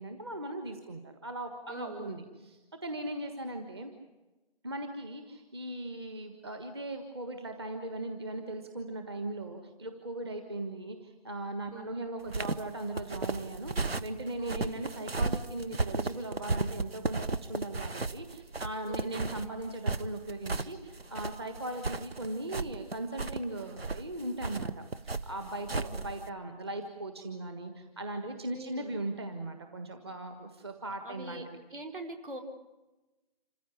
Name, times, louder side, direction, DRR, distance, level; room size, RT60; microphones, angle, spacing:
voice 1, 0.0-2.2 2.8-3.9 4.6-31.4, right 1 dB, 25° right, 6 dB, 1.5 m, -38 dB
voice 2, 1.7-2.1 11.7-11.9 14.4-14.7 18.8-19.1 25.7-26.0 28.5-29.0 31.0-31.4 31.7-32.4, right 2 dB, 60° right, 4 dB, 4.2 m, -42 dB
sound 1, 12.2-26.3, right 3 dB, 85° right, 1.2 m, -35 dB
27.0 x 15.5 x 9.8 m, 1.1 s
figure-of-eight pair, 165°, 30 cm